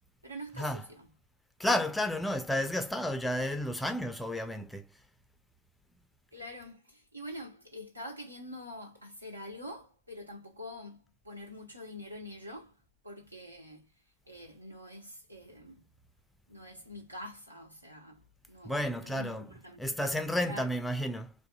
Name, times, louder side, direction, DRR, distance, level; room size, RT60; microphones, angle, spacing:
voice 1, 0.2-1.1 6.3-12.8 13.0-13.9 14.3-15.9 16.5-20.7, equal, 85° right, 0.9 m, -45 dB
voice 2, 1.6-4.9 18.6-19.5 19.8-21.3, left 1 dB, 5° left, 0.4 m, -31 dB
2.6 x 2.5 x 2.3 m
figure-of-eight pair, 90°, 0 cm